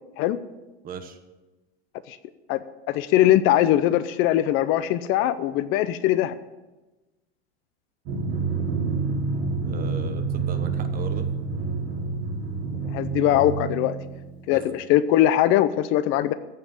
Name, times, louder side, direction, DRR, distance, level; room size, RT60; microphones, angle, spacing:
voice 1, 0.8-1.2 9.6-11.3 14.5-14.8, right 7 dB, 25° right, 8 dB, 1.2 m, -37 dB
voice 2, 2.9-6.4 12.8-13.9 14.5-16.3, left 13 dB, 40° left, 14 dB, 0.6 m, -21 dB
Drum, 8.1-14.5, right 4 dB, 45° right, 2.9 m, -28 dB
15.0 x 5.7 x 8.3 m, 1.1 s
supercardioid pair, 140°, 32 cm